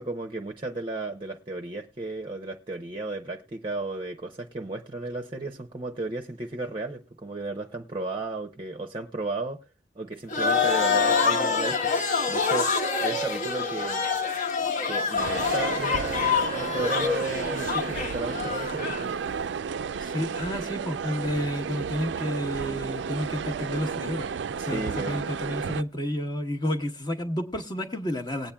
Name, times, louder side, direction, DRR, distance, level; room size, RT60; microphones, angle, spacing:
voice 1, 0.0-9.6 9.9-11.9 12.3-14.1 14.8-19.2 24.6-25.2, right 2 dB, 30° right, 0.6 m, -34 dB
sound 1, 10.3-19.1, left 5 dB, 45° left, 1.1 m, -26 dB
sound 2, 15.2-25.8, right 6 dB, 85° right, 0.4 m, -32 dB
voice 2, 20.0-24.3 24.7-28.5, equal, 25° left, 1.0 m, -31 dB
19.5 x 8.6 x 2.2 m
head